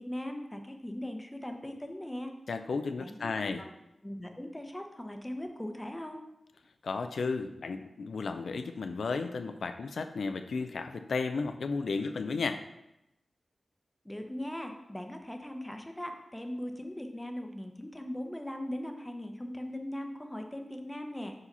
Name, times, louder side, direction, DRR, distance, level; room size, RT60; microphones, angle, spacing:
voice 1, 0.0-2.3 3.0-3.7 4.0-6.2 14.0-21.3, left 1 dB, 10° left, 5 dB, 0.7 m, -39 dB
voice 2, 2.5-3.6 6.8-12.6, left 4 dB, 80° left, 8 dB, 0.3 m, -33 dB
4.9 x 4.1 x 5.3 m, 0.89 s
wide cardioid pair, 95°, 0 cm